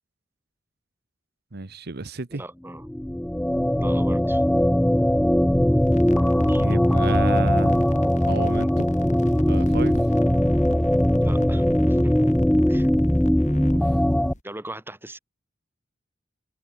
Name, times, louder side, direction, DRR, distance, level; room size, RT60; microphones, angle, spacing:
voice 1, 1.5-2.4 6.5-7.8 8.3-8.9 9.5-10.0 13.7-14.0, right 3 dB, 55° right, 1.1 m, -31 dB
voice 2, 2.3-2.8 3.8-4.4 6.5-6.6 11.2-11.6 11.9-12.3 12.7-12.9 14.4-15.2, right 1 dB, 10° right, 4.7 m, -39 dB
sound 1, 2.8-14.3, equal, 5° left, 0.3 m, -20 dB
sound 2, 5.8-14.4, left 1 dB, 40° left, 4.8 m, -40 dB
head